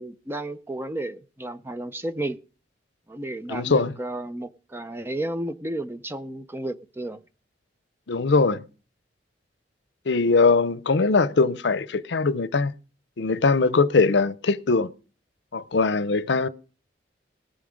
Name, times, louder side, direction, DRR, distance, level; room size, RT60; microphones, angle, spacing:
voice 1, 0.0-2.4 3.1-7.2, right 1 dB, 15° right, 0.5 m, -32 dB
voice 2, 3.5-3.9 8.1-8.6 10.1-12.7 13.2-14.9 15.5-16.5, left 4 dB, 70° left, 0.6 m, -21 dB
19.5 x 7.2 x 5.1 m
head